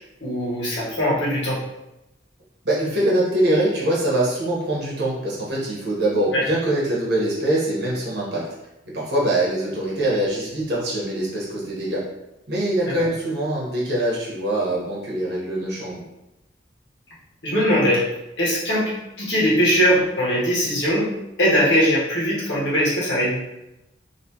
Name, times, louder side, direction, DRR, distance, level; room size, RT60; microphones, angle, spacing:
voice 1, 0.2-1.6 6.3-6.4 12.8-12.9 17.4-18.1 18.4-18.9 19.2-21.1 21.4-23.4, equal, 80° left, -7 dB, 1.4 m, -20 dB
voice 2, 2.6-8.5 8.9-12.0 12.5-16.0, right 1 dB, 60° right, -6 dB, 1.3 m, -23 dB
3.3 x 2.9 x 2.9 m, 0.94 s
head